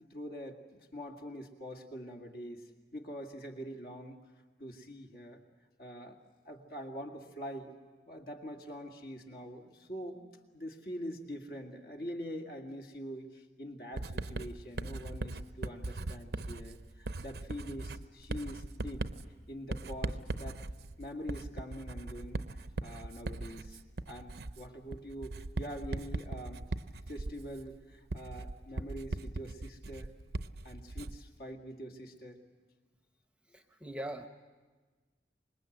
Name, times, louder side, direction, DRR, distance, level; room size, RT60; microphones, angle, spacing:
voice 1, 0.1-4.2 4.6-5.4 5.8-6.2 6.4-7.7 8.1-19.1 19.5-20.6 21.0-22.4 22.8-23.8 24.1-26.6 27.1-30.2 30.6-32.4, equal, 55° left, 4 dB, 2.0 m, -44 dB
Writing, 14.0-31.3, right 2 dB, 70° right, 0.7 m, -39 dB
voice 2, 33.5-34.3, right 1 dB, 5° right, 6 dB, 0.9 m, -41 dB
25.5 x 21.5 x 7.9 m, 1.4 s
head